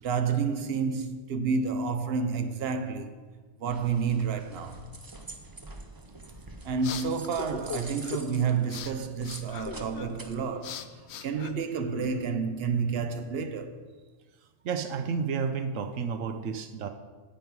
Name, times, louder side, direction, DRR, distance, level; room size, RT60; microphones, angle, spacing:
voice 1, 0.0-3.2 3.6-4.8 6.6-10.9 11.2-13.8, right 5 dB, 60° right, 0.9 m, -30 dB
sound 1, 3.6-10.3, right 2 dB, 25° right, 0.5 m, -46 dB
sound 2, 6.3-12.2, left 7 dB, 70° left, 0.8 m, -42 dB
voice 2, 14.6-16.9, right 5 dB, 85° right, 1.1 m, -31 dB
16.0 x 5.4 x 4.7 m
omnidirectional pair, 1.3 m